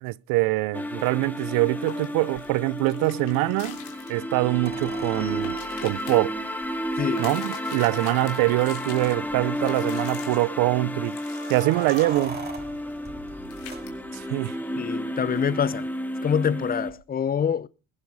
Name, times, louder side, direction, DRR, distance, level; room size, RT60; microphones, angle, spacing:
voice 1, 0.0-3.8 4.1-5.6 5.8-6.3 7.2-11.1 11.5-12.4 14.1-14.6, right 21 dB, 75° right, 0.6 m, -24 dB
sound 1, 0.7-16.9, equal, 5° left, 2.2 m, -32 dB
sound 2, 1.0-4.2 4.4-4.5 5.1-6.2 7.1-9.1 9.6-10.5 11.0-13.1 13.5-13.9 14.1-14.2 15.4-15.5, left 10 dB, 85° left, 3.5 m, -44 dB
sound 3, 4.6-7.0 8.0-8.1 8.4-8.5 9.0-9.5 11.2-14.4 16.9-17.0, right 3 dB, 30° right, 3.8 m, -41 dB
voice 2, 7.0-7.3 14.8-15.9 16.2-17.7, left 8 dB, 25° left, 0.6 m, -25 dB
21.0 x 7.1 x 5.4 m
supercardioid pair, 90°, 34 cm